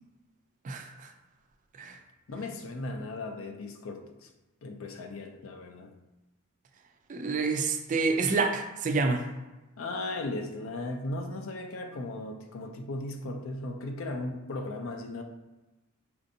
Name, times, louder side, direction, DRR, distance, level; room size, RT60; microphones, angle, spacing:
voice 1, 0.6-1.1 1.8-2.0 7.1-9.2, right 4 dB, 35° right, 5 dB, 0.3 m, -28 dB
voice 2, 2.3-4.3 4.6-5.9 9.8-15.2, left 2 dB, 60° left, 4 dB, 0.4 m, -37 dB
4.3 x 2.6 x 2.6 m, 1.1 s
head